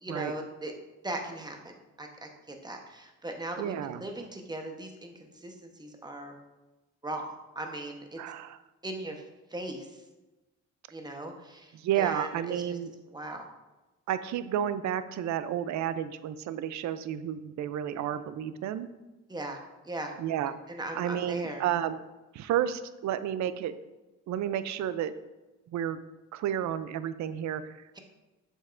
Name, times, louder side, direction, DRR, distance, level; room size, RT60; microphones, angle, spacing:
voice 1, 0.0-0.7 1.0-6.4 7.0-8.2 8.8-10.0 10.9-12.8 13.1-13.5 19.3-19.6 19.8-20.1 20.7-21.6 27.9-28.0, right 1 dB, 15° right, 3 dB, 1.0 m, -39 dB
voice 2, 3.6-4.0 8.2-8.6 11.7-12.9 14.1-18.9 20.2-20.5 20.9-22.0 22.3-23.7 24.3-25.1 25.7-26.0 26.3-27.8, right 10 dB, 70° right, 13 dB, 0.5 m, -31 dB
7.1 x 5.4 x 2.5 m, 1.1 s
cardioid pair, 90°, 30 cm